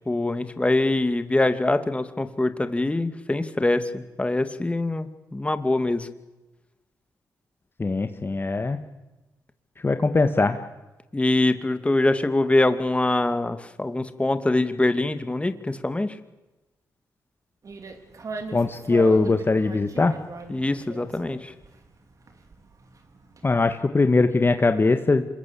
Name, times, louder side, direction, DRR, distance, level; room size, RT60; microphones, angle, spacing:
voice 1, 0.1-6.1 11.1-16.1 20.5-21.4, left 2 dB, 20° left, 9 dB, 2.3 m, -24 dB
voice 2, 7.8-8.8 9.8-10.6 18.5-20.1 23.4-25.3, left 3 dB, 35° left, 7 dB, 1.9 m, -21 dB
sound 1, 17.6-23.8, right 4 dB, 55° right, 4.2 m, -40 dB
26.5 x 22.0 x 8.7 m, 1.1 s
cardioid pair, 65°, 7 cm